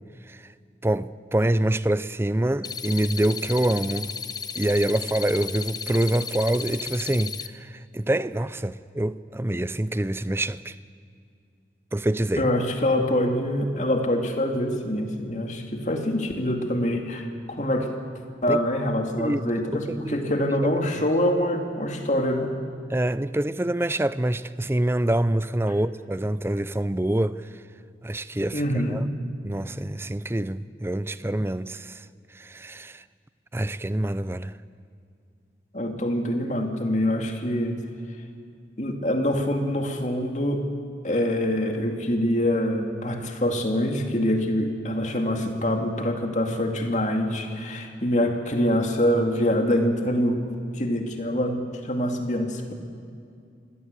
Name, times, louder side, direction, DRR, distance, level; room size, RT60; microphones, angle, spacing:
voice 1, 0.8-4.1 4.5-10.7 11.9-12.5 18.5-18.6 19.2-19.4 19.7-20.2 20.9-21.1 22.9-27.5 28.0-29.1 29.4-32.0 32.3-33.0 33.5-34.5, right 1 dB, 15° right, 0.5 m, -26 dB
sound 1, 2.6-7.5, left 7 dB, 20° left, 0.7 m, -34 dB
voice 2, 12.4-17.9 18.4-22.6 28.5-29.1 35.7-37.8 38.8-40.7 41.0-52.7, left 1 dB, 45° left, 2.4 m, -25 dB
25.5 x 16.5 x 8.3 m
head